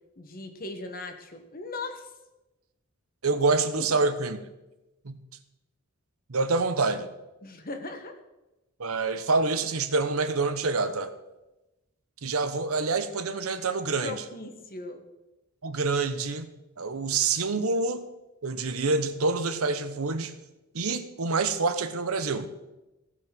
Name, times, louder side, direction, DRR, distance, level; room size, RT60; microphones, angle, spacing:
voice 1, 0.2-2.1 3.8-4.1 7.4-8.2 14.0-15.1, left 2 dB, 45° left, 6 dB, 1.4 m, -38 dB
voice 2, 3.2-4.4 5.0-5.2 6.3-7.1 8.8-11.1 12.2-14.2 15.6-16.5 16.8-18.1 18.4-20.3 20.7-22.5, right 3 dB, 80° right, 10 dB, 0.9 m, -27 dB
16.0 x 6.1 x 6.0 m, 1.0 s
head